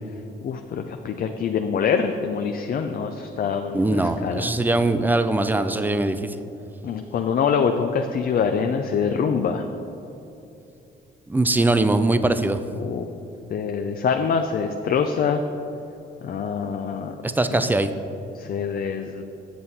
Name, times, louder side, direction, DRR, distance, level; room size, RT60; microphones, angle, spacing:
voice 1, 0.4-4.5 6.8-9.6 12.8-13.1 13.5-15.4 16.2-17.2 17.5-17.7 18.3-19.2, left 6 dB, 50° left, 5 dB, 0.5 m, -25 dB
voice 2, 3.7-6.3 11.3-12.6 17.2-17.9, right 2 dB, 10° right, 10 dB, 0.4 m, -21 dB
7.7 x 7.2 x 4.1 m, 2.8 s
cardioid pair, 90°, 20 cm